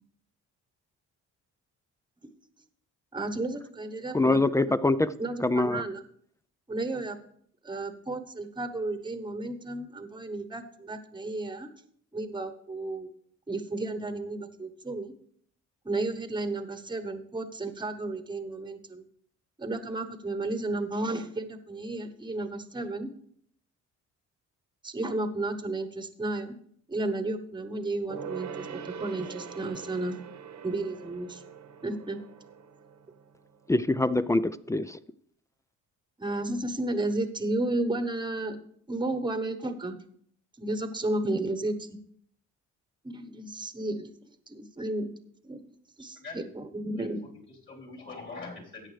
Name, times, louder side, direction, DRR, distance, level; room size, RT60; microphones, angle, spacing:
voice 1, 3.1-4.7 5.2-6.0 6.7-7.2 7.6-11.7 12.1-13.1 13.5-15.1 15.8-19.0 19.6-23.1 24.8-26.5 26.9-30.2 30.6-31.4 31.8-32.2 36.2-38.6 38.9-40.0 40.6-42.0 43.0-44.1 44.5-45.1 45.4-45.6 46.0-47.2, right 2 dB, 15° right, 1.1 m, -33 dB
voice 2, 4.1-5.1 5.4-5.8 33.7-35.0, left 2 dB, 10° left, 0.3 m, -24 dB
Gong, 28.1-34.0 34.3-34.4, right 7 dB, 65° right, 1.1 m, -43 dB
voice 3, 46.2-46.5 47.0-48.9, left 3 dB, 40° left, 4.0 m, -43 dB
13.5 x 9.0 x 3.3 m
cardioid pair, 90°, 30 cm